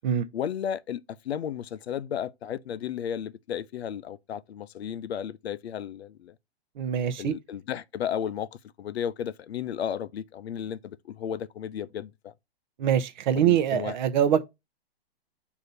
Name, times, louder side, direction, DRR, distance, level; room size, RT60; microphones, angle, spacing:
voice 1, 0.3-6.3 7.2-8.5 8.8-12.3 13.3-13.9, left 9 dB, 80° left, 0.6 m, -34 dB
voice 2, 6.8-7.3 12.8-14.4, right 9 dB, 45° right, 0.7 m, -24 dB
6.5 x 2.7 x 5.4 m
hypercardioid pair, 145°, 32 cm